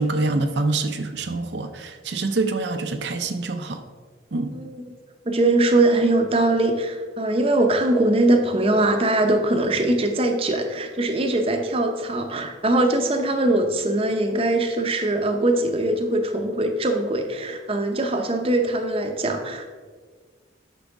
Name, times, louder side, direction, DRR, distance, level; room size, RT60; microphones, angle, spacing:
voice 1, 0.0-3.8 4.3-4.5, right 2 dB, 70° right, 6 dB, 0.6 m, -25 dB
voice 2, 5.3-19.7, right 2 dB, 30° right, 5 dB, 0.6 m, -21 dB
10.0 x 6.2 x 3.5 m, 1.5 s
head